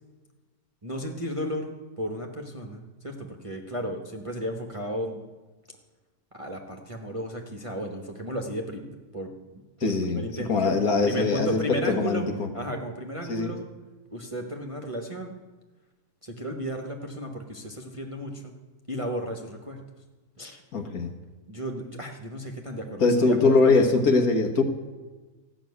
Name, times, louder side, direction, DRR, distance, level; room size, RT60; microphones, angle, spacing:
voice 1, 0.8-1.7 2.0-5.2 6.3-12.2 12.5-13.6 14.1-15.3 16.2-18.5 18.9-19.8 20.4-20.6 21.5-24.0, equal, 25° right, 2 dB, 0.9 m, -34 dB
voice 2, 9.8-11.6 11.9-12.5 13.3-13.5 20.7-21.1 23.0-24.6, left 3 dB, 60° left, 5 dB, 1.7 m, -22 dB
14.5 x 6.4 x 9.5 m, 1.3 s
omnidirectional pair, 1.8 m